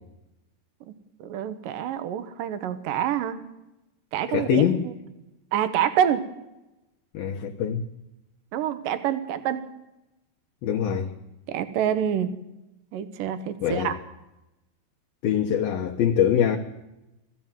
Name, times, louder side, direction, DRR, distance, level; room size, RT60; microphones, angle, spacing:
voice 1, 1.2-3.4 4.1-4.9 5.5-6.2 8.5-9.6 11.5-12.3 12.9-13.9, right 9 dB, 70° right, 2.1 m, -27 dB
voice 2, 4.3-4.8 7.1-7.9 10.6-11.1 13.6-13.9 15.2-16.6, left 9 dB, 70° left, 2.5 m, -23 dB
20.5 x 15.0 x 9.1 m
omnidirectional pair, 5.4 m